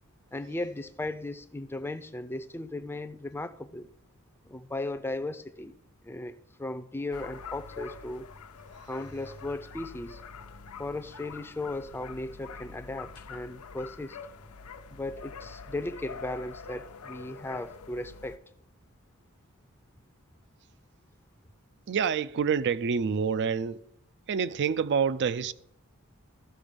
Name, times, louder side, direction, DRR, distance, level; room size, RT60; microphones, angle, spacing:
voice 1, 0.3-3.9 4.4-5.7 6.0-8.3 8.8-10.2 10.8-14.2 14.9-18.4, left 2 dB, 10° left, 0.5 m, -36 dB
sound 1, 7.1-18.4, left 5 dB, 80° left, 0.7 m, -45 dB
voice 2, 21.9-23.8 24.3-25.5, right 6 dB, 55° right, 0.4 m, -27 dB
13.5 x 6.1 x 5.1 m
head